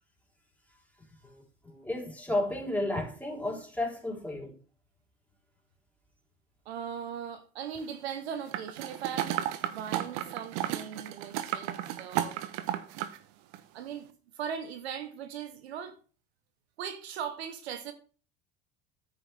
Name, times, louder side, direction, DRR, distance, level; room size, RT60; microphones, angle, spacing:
voice 1, 1.2-4.6, left 1 dB, 5° left, 3.9 m, -33 dB
voice 2, 6.6-12.4 13.7-14.1 14.4-16.0 16.8-17.9, right 8 dB, 90° right, 1.2 m, -39 dB
sound 1, 8.5-13.2 13.5-13.6, right 12 dB, 70° right, 1.0 m, -33 dB
10.0 x 8.0 x 3.5 m
hypercardioid pair, 85°, 31 cm